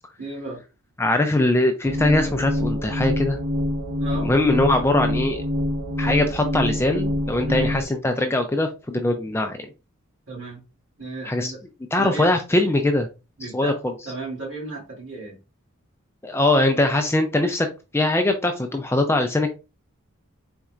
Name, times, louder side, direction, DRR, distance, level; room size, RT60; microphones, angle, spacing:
voice 1, 0.2-0.6 4.0-4.3 7.4-7.7 10.3-10.6 11.0-11.6 12.0-12.3 13.4-13.8 14.0-15.4, right 2 dB, 55° right, -3 dB, 2.6 m, -34 dB
voice 2, 1.0-3.4 4.2-5.4 6.0-9.7 11.3-11.5 11.9-13.1 13.5-13.7 16.2-17.7 17.9-19.5, left 2 dB, 10° left, 5 dB, 0.3 m, -21 dB
sound 1, 1.8-7.8, left 1 dB, 80° right, 1.4 m, -26 dB
4.3 x 4.0 x 2.4 m, 0.30 s
head